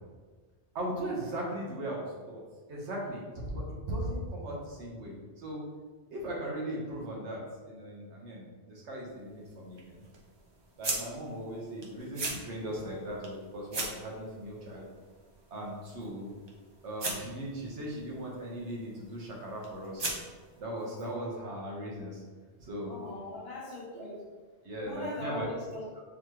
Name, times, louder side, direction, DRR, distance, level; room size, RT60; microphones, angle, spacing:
voice 1, 0.7-2.4 2.7-5.6 6.1-10.0 10.8-14.8 15.5-16.3 16.8-20.1 20.6-22.2 22.6-22.9 23.9-24.1 24.6-25.5 25.9-26.0, right 1 dB, 85° right, -3 dB, 1.2 m, -38 dB
sound 1, 9.0-20.6, right 2 dB, 35° right, 0.4 m, -42 dB
voice 2, 22.9-24.2 24.8-25.8, left 2 dB, 65° left, -2 dB, 1.0 m, -40 dB
4.1 x 3.1 x 2.9 m, 1.4 s
omnidirectional pair, 1.1 m